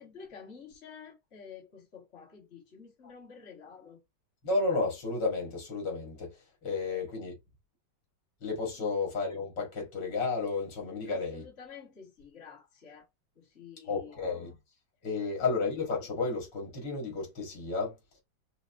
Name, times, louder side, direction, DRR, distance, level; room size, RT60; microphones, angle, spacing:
voice 1, 0.0-4.0 6.8-7.1 8.8-8.9 11.1-13.1 13.4-14.2 15.1-15.5, left 6 dB, 35° left, 1.6 m, -50 dB
voice 2, 4.4-7.3 8.4-11.4 13.9-14.5 15.0-17.9, left 3 dB, 70° left, 2.4 m, -32 dB
5.4 x 2.3 x 2.5 m
omnidirectional pair, 2.0 m